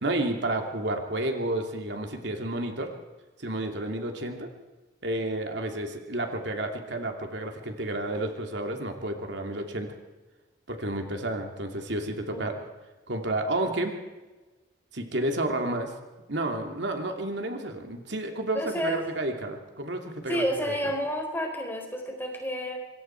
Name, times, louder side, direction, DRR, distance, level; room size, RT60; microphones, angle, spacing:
voice 1, 0.0-2.9 3.4-4.5 5.0-9.9 10.7-12.5 13.1-13.9 14.9-15.9 16.3-20.8, right 1 dB, 70° right, 4 dB, 2.8 m, -31 dB
voice 2, 18.5-19.0 20.3-22.8, equal, 10° left, 2 dB, 4.4 m, -30 dB
26.5 x 22.5 x 4.7 m, 1.2 s
head